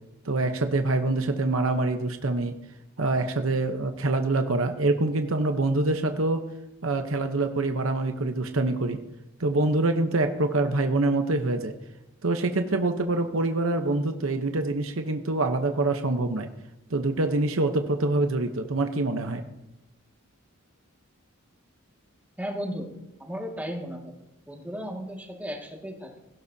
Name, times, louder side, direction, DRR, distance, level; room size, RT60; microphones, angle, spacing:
voice 1, 0.2-2.6 3.0-6.4 6.8-9.0 9.4-11.7 12.2-16.5 16.9-19.4, right 2 dB, 70° right, 6 dB, 1.0 m, -25 dB
voice 2, 22.4-22.9 23.2-24.1 24.5-26.2, equal, 10° right, -1 dB, 2.0 m, -35 dB
17.0 x 16.5 x 2.8 m, 0.91 s
head